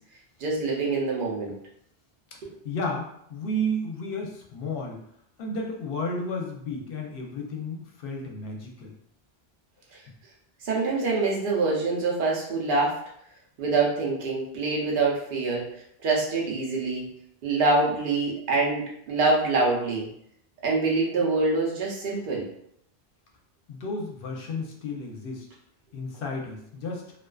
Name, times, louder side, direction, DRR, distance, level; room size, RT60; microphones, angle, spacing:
voice 1, 0.4-1.6 2.4-2.5 10.6-13.0 13.6-15.7 16.0-17.1 17.4-20.1 20.6-22.5, right 3 dB, 60° right, -3 dB, 0.8 m, -25 dB
voice 2, 2.6-5.0 5.4-9.0 23.7-25.5 25.9-27.1, left 1 dB, 65° left, 0 dB, 0.7 m, -32 dB
2.4 x 2.3 x 2.2 m, 0.71 s
omnidirectional pair, 1.1 m